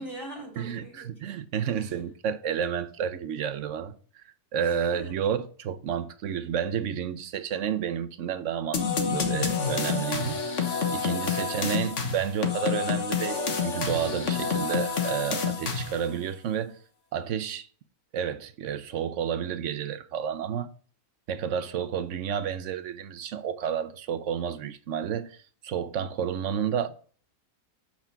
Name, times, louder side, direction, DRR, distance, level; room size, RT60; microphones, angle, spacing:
voice 1, 0.0-1.3 1.8-2.0 4.5-5.2 26.8-26.9, right 1 dB, 15° left, 3.3 m, -43 dB
voice 2, 0.6-16.8 17.1-17.7 18.1-20.7 21.3-26.9, right 8 dB, 60° right, 0.9 m, -31 dB
sound 1, 8.7-16.1, left 5 dB, 50° left, 1.4 m, -28 dB
8.3 x 4.5 x 5.7 m
omnidirectional pair, 1.7 m